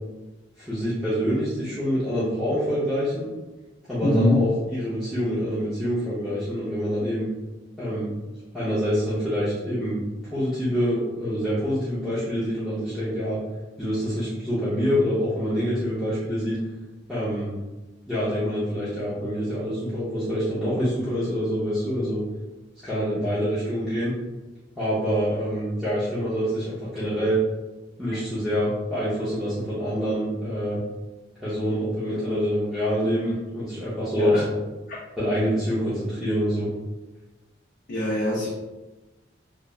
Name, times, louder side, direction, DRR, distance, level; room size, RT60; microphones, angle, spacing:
voice 1, 0.6-3.3 3.9-7.3 7.8-8.1 8.5-10.0 10.3-13.4 13.8-16.6 17.1-17.5 18.1-22.2 22.8-24.1 24.8-27.4 28.0-30.8 31.4-34.5 35.2-36.7, equal, ahead, -13 dB, 0.6 m, -26 dB
voice 2, 4.0-4.5 34.2-34.5 37.9-38.5, left 1 dB, 50° left, -6 dB, 0.5 m, -22 dB
3.1 x 2.1 x 2.3 m, 1.1 s
head